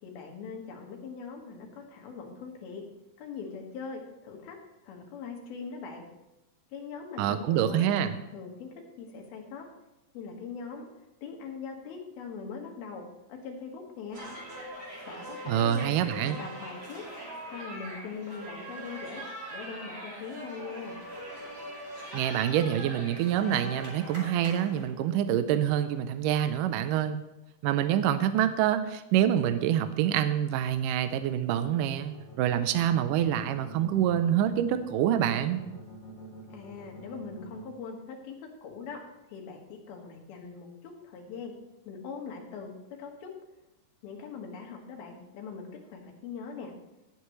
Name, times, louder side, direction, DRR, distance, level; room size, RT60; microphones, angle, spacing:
voice 1, 0.0-2.8 3.2-4.6 4.8-6.0 6.7-7.9 8.3-9.7 10.1-10.9 11.2-14.2 15.1-17.0 17.5-19.2 19.5-21.0 36.5-39.0 39.3-41.5 41.9-43.3 44.0-46.7, left 5 dB, 80° left, 1 dB, 3.5 m, -41 dB
voice 2, 7.2-8.2 15.5-16.4 22.1-27.2 27.6-35.6, right 10 dB, 80° right, 10 dB, 2.0 m, -26 dB
sound 1, 14.1-24.8, right 1 dB, 20° right, 2.9 m, -42 dB
sound 2, 32.1-37.6, equal, 35° left, 2.4 m, -47 dB
18.0 x 8.2 x 3.1 m, 0.94 s
omnidirectional pair, 4.3 m